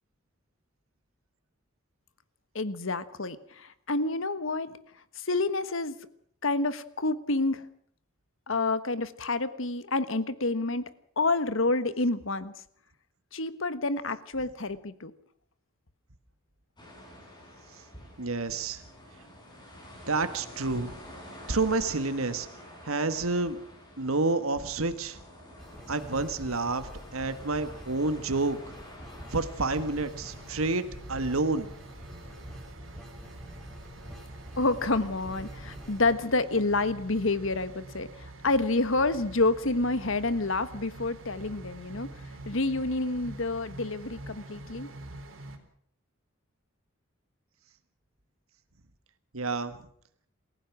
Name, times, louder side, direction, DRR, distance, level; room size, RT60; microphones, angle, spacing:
voice 1, 2.5-4.8 5.2-6.0 6.4-7.6 8.5-10.9 11.2-12.5 13.3-15.1 34.6-42.1 42.4-44.9, left 2 dB, 65° left, 13 dB, 1.4 m, -28 dB
sound 1, 16.8-30.7, left 1 dB, 20° left, 7.4 m, -49 dB
voice 2, 18.2-18.8 20.1-21.0 21.3-22.5 22.8-23.6 24.0-25.2 25.9-28.8 29.3-31.7 49.3-49.8, right 3 dB, 90° right, 10 dB, 1.7 m, -29 dB
sound 2, 25.6-36.1, equal, ahead, 5.2 m, -46 dB
sound 3, 29.5-45.6, right 2 dB, 65° right, 3.6 m, -46 dB
28.0 x 16.0 x 6.1 m, 0.65 s
head